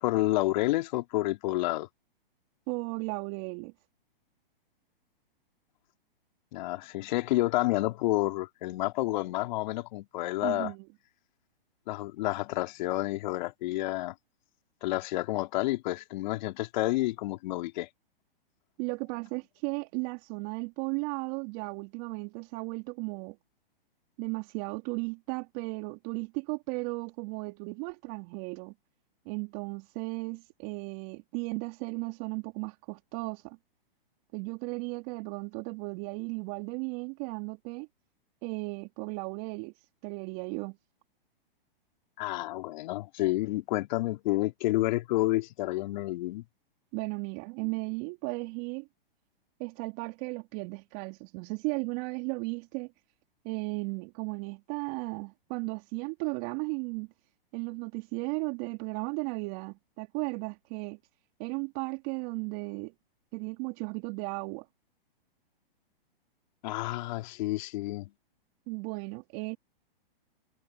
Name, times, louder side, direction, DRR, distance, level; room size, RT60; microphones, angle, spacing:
voice 1, 0.0-1.9 6.5-10.7 11.9-14.1 14.8-17.9 42.2-46.4 66.6-68.1, left 18 dB, 50° left, 3.1 m, -29 dB
voice 2, 2.7-3.7 10.4-10.9 18.8-23.4 24.2-28.7 29.3-33.6 34.3-37.9 38.4-39.7 40.0-40.8 46.9-48.9 49.6-52.9 53.4-57.1 57.5-61.0 61.4-62.9 63.3-64.7 68.7-69.6, right 31 dB, 40° right, 3.5 m, -35 dB
hypercardioid pair, 125°, 29 cm